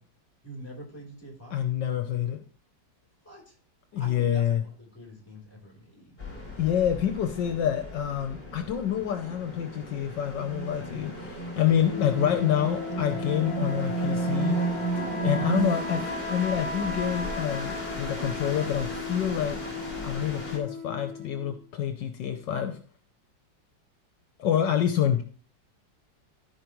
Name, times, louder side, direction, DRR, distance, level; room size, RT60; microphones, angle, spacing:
voice 1, 0.4-1.6 3.2-3.6 3.9-6.4 24.8-25.0, equal, 5° left, -2 dB, 3.4 m, -46 dB
voice 2, 1.5-2.4 3.9-4.6 6.6-14.6 15.0-19.6 20.0-22.8 24.4-25.2, left 9 dB, 75° left, 6 dB, 1.4 m, -27 dB
sound 1, 6.2-20.6, right 3 dB, 25° left, 2.8 m, -34 dB
sound 2, 11.9-21.6, left 4 dB, 40° right, 3.1 m, -37 dB
14.0 x 5.2 x 3.1 m, 0.43 s
omnidirectional pair, 2.0 m